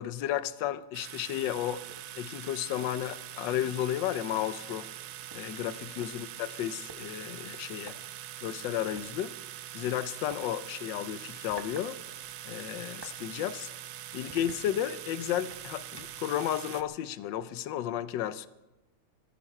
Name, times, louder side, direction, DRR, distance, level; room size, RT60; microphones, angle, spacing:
voice 1, 0.0-1.8 2.2-4.9 5.3-7.9 8.4-9.3 9.7-12.0 12.5-13.7 14.1-18.5, left 11 dB, 70° left, 1.3 m, -33 dB
sound 1, 0.9-16.8, right 12 dB, 85° right, 1.6 m, -43 dB
sound 2, 1.9-2.1 2.5-2.7 3.1-3.4 4.3-4.4 4.7-6.1 6.9-7.0 7.8-8.0 9.0-9.1 10.3-10.5 11.2-11.9 12.2-13.2 13.7-13.8 14.3-15.1 15.5-16.3, right 2 dB, 15° right, 0.8 m, -50 dB
19.5 x 14.5 x 4.4 m
omnidirectional pair, 2.4 m